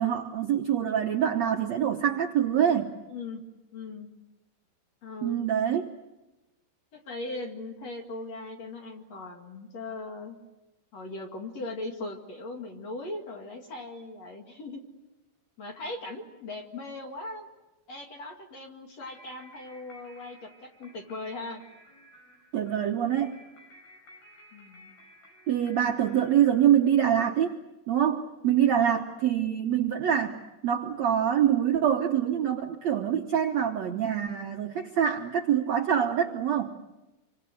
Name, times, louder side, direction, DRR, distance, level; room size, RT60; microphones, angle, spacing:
voice 1, 0.0-2.9 5.2-5.9 22.5-23.4 25.5-27.6 27.9-36.7, right 9 dB, 70° right, 3 dB, 1.6 m, -25 dB
voice 2, 3.1-3.4 3.7-4.1 5.0-5.4 6.9-10.4 10.9-14.8 15.6-17.5 17.9-21.6 24.5-25.0 28.4-28.7 34.8-34.9, left 2 dB, 45° left, 2 dB, 2.7 m, -39 dB
sound 1, 19.0-27.3, equal, 65° left, 7.7 m, -55 dB
28.0 x 24.5 x 8.0 m, 1.0 s
omnidirectional pair, 4.8 m